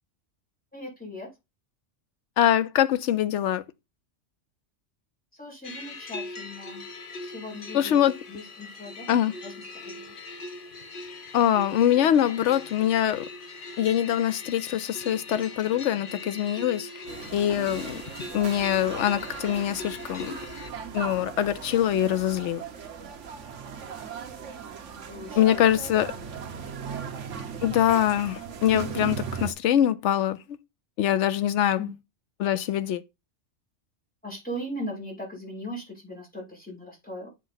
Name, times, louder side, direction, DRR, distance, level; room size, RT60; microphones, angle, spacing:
voice 1, 0.7-1.3 5.4-6.8 7.2-9.1 9.4-10.1 12.0-12.1 25.1-25.6 26.4-27.4 31.8-31.9 34.2-37.3, left 1 dB, 5° left, 4.0 m, -39 dB
voice 2, 2.4-3.6 7.7-8.1 9.1-9.3 11.3-13.2 13.8-16.9 17.3-18.0 18.3-20.4 20.9-22.6 25.4-26.1 27.6-30.4 31.0-31.8 32.4-33.0, left 11 dB, 75° left, 1.0 m, -23 dB
sound 1, 5.6-20.7, left 2 dB, 50° left, 1.0 m, -41 dB
sound 2, 17.1-29.5, right 7 dB, 80° right, 1.2 m, -38 dB
8.2 x 5.1 x 3.9 m
omnidirectional pair, 1.3 m